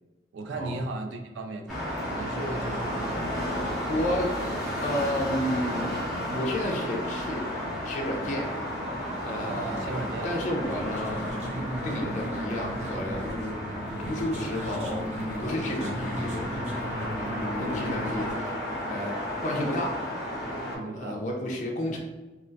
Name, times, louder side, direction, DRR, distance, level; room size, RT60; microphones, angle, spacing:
voice 1, 0.3-3.3 9.4-10.3 20.7-21.2, right 2 dB, 85° right, 5 dB, 0.3 m, -36 dB
sound 1, 1.7-20.8, equal, ahead, 0.7 m, -33 dB
voice 2, 3.9-4.4 4.8-5.9 6.3-7.4 7.8-8.5 9.2-11.2 11.8-13.2 14.0-16.4 17.6-18.6 18.9-20.1 20.9-22.0, left 1 dB, 40° left, 0 dB, 0.3 m, -31 dB
sound 2, 10.6-18.3, equal, 40° right, 0.6 m, -34 dB
2.3 x 2.2 x 2.5 m, 1.2 s
head